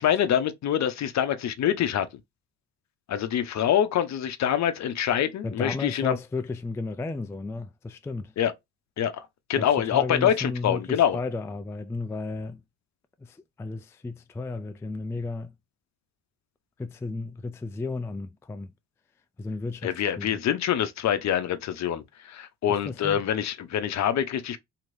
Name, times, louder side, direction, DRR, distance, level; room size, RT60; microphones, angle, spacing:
voice 1, 0.0-2.1 3.1-6.1 8.4-8.5 9.0-11.2 19.8-24.6, left 9 dB, 50° left, 0.7 m, -25 dB
voice 2, 5.4-8.3 9.6-12.6 13.2-15.6 16.8-18.7 19.4-20.4 22.7-23.2, left 3 dB, 10° left, 0.3 m, -34 dB
3.0 x 2.8 x 2.6 m
hypercardioid pair, 55°, 36 cm